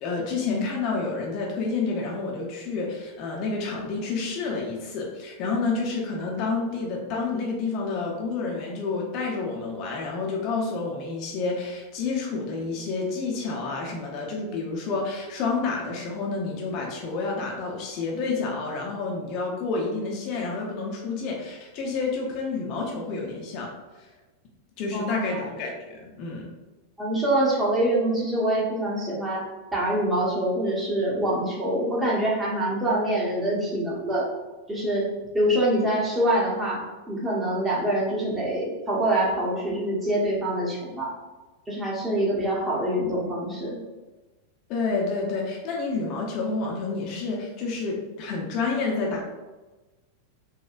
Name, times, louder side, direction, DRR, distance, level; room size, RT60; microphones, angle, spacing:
voice 1, 0.0-24.1 24.8-26.5 44.7-49.2, left 4 dB, 40° left, -1 dB, 0.5 m, -29 dB
voice 2, 24.9-25.4 27.0-29.4 29.7-34.3 34.7-35.1 35.3-41.1 41.7-43.8, right 1 dB, 15° right, -5 dB, 1.0 m, -25 dB
3.8 x 2.2 x 2.4 m, 1.2 s
figure-of-eight pair, 90°, 0 cm